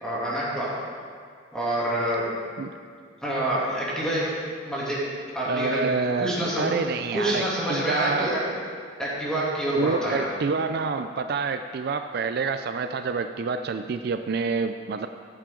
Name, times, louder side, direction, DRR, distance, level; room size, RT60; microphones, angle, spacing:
voice 1, 0.0-0.7 1.5-2.3 3.2-4.2 4.6-5.0 5.3-5.8 6.2-6.7 7.1-8.4 9.0-10.3, right 1 dB, 5° left, -8 dB, 2.7 m, -27 dB
voice 2, 5.4-8.4 9.8-15.1, right 4 dB, 55° right, 8 dB, 0.3 m, -28 dB
13.5 x 8.6 x 3.8 m, 2.1 s
head